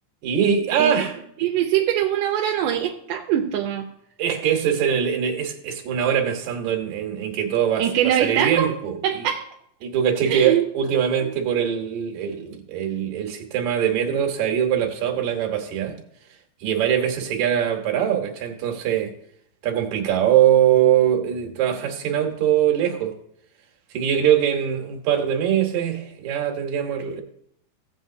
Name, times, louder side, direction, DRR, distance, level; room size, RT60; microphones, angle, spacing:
voice 1, 0.2-1.2 4.2-9.3 9.8-16.0 16.6-19.1 19.6-23.1 23.9-27.2, right 9 dB, 65° right, 2 dB, 2.6 m, -22 dB
voice 2, 1.4-3.9 7.8-8.7 9.0-9.5 10.3-10.7, right 10 dB, 80° right, 1 dB, 2.4 m, -22 dB
16.5 x 8.1 x 2.7 m, 0.70 s
omnidirectional pair, 3.8 m